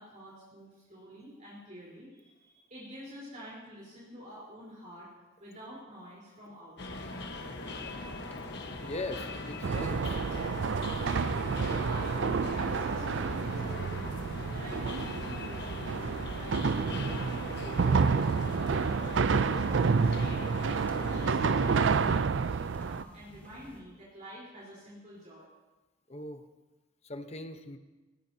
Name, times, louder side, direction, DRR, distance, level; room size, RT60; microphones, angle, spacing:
voice 1, 0.0-5.1 5.4-7.1 11.4-14.1 14.5-16.1 16.3-20.4 21.0-25.5, equal, 40° right, -7 dB, 4.1 m, -48 dB
sound 1, 6.8-22.2, left 2 dB, 60° left, 1.3 m, -41 dB
sound 2, 6.9-23.8, equal, 10° left, 2.0 m, -53 dB
voice 2, 8.8-10.2 26.1-26.4 27.0-27.8, left 2 dB, 35° left, 8 dB, 0.9 m, -40 dB
sound 3, 9.6-23.0, right 5 dB, 70° right, 0.4 m, -29 dB
20.0 x 19.5 x 2.8 m, 1.2 s
head